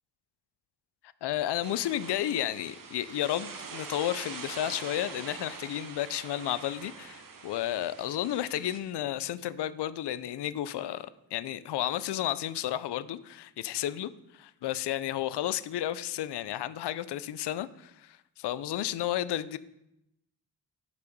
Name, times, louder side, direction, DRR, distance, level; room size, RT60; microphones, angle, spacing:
voice 1, 1.2-19.6, left 12 dB, 65° left, 16 dB, 0.5 m, -32 dB
sound 1, 1.6-8.8, right 5 dB, 50° right, 0.9 m, -44 dB
6.2 x 5.5 x 5.2 m, 0.85 s
cardioid pair, 90°, 44 cm